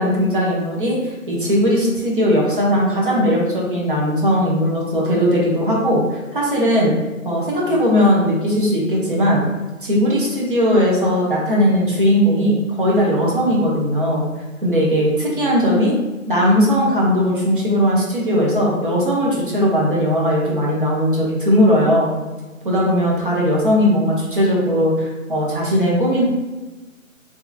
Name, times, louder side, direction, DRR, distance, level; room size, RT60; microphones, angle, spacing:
voice 1, 0.0-6.9 7.2-9.4 9.8-14.3 14.6-15.9 16.3-22.1 22.6-26.2, equal, 40° right, -4 dB, 0.8 m, -18 dB
2.9 x 2.4 x 3.4 m, 1.1 s
figure-of-eight pair, 165°, 42 cm